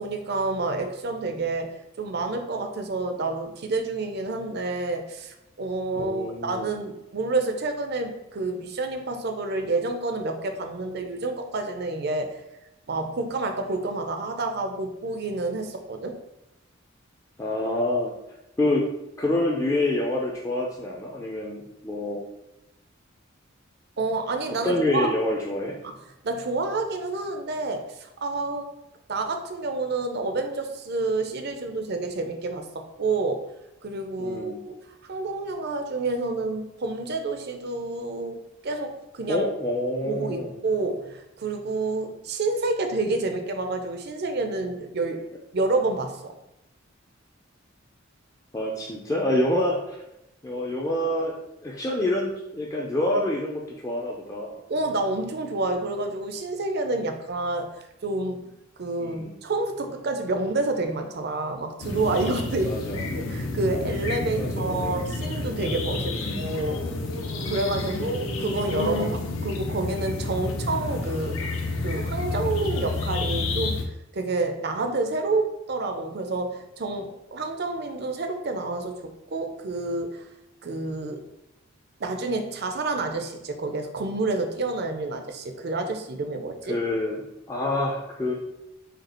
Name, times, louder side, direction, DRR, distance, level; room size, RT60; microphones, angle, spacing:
voice 1, 0.0-12.4 12.9-16.2 24.0-25.1 25.8-25.9 26.2-28.7 29.1-33.5 33.8-34.8 35.1-39.4 40.0-45.2 45.5-46.3 54.7-57.7 58.0-58.5 58.8-66.9 67.4-71.4 71.8-73.8 74.1-80.3 80.6-81.2 82.0-86.8, right 3 dB, 50° right, 5 dB, 0.6 m, -29 dB
voice 2, 6.0-6.7 17.4-18.1 18.6-18.8 19.2-22.2 24.6-25.8 34.2-34.6 39.3-40.6 48.5-50.0 50.4-51.3 51.6-54.6 59.0-59.3 62.6-63.0 64.4-65.0 66.1-66.5 67.8-68.2 86.7-88.3, left 1 dB, 15° left, -3 dB, 0.5 m, -27 dB
sound 1, 61.8-73.8, left 2 dB, 85° left, 0.7 m, -30 dB
5.1 x 2.4 x 4.3 m, 0.90 s
head